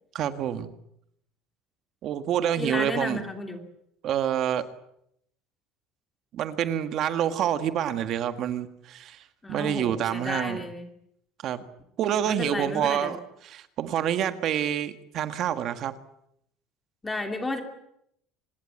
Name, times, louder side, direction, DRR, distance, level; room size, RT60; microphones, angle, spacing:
voice 1, 0.1-0.7 2.0-3.2 4.0-4.7 6.3-10.6 11.4-11.6 12.0-16.0, right 10 dB, 40° right, 10 dB, 1.7 m, -27 dB
voice 2, 2.6-3.6 9.4-10.9 12.2-13.1 17.0-17.6, left 2 dB, 10° left, 5 dB, 2.8 m, -32 dB
25.5 x 21.0 x 8.8 m, 0.75 s
cardioid pair, 170°, 0 cm